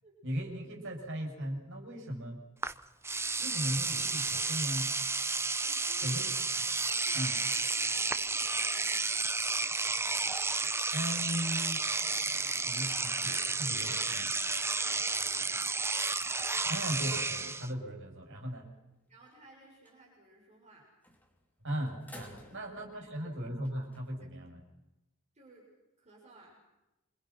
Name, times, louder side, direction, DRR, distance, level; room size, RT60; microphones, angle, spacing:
voice 1, 0.2-2.4 3.4-4.9 6.0-6.3 7.1-7.3 10.9-11.8 12.6-14.3 16.7-18.7 21.6-24.6, equal, 60° right, 2 dB, 7.5 m, -37 dB
Engine / Domestic sounds home sounds, 2.6-2.7 3.0-17.7, right 3 dB, 10° right, 0.9 m, -32 dB
voice 2, 5.6-6.2 6.7-9.2 14.0-15.7 19.1-20.9 22.5-22.6 22.9-23.1 25.3-25.7 26.0-26.6, right 2 dB, 30° right, -2 dB, 7.3 m, -58 dB
sound 1, 18.4-18.9 19.3-19.4 19.7-20.0 21.0-21.5 21.9-24.1, left 1 dB, 10° left, 3.5 m, -55 dB
27.5 x 27.5 x 5.9 m, 0.98 s
head